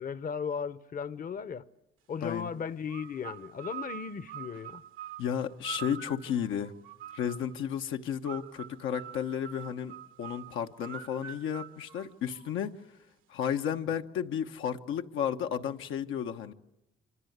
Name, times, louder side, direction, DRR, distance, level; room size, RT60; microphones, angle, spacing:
voice 1, 0.0-1.7 2.1-4.8, left 6 dB, 45° left, 0.9 m, -36 dB
voice 2, 2.2-2.5 5.2-6.7 7.1-12.7 13.3-16.5, left 8 dB, 85° left, 1.2 m, -33 dB
sound 1, 2.9-7.6 8.2-12.7, right 10 dB, 85° right, 1.4 m, -45 dB
26.5 x 25.5 x 8.1 m
cardioid pair, 90°, 20 cm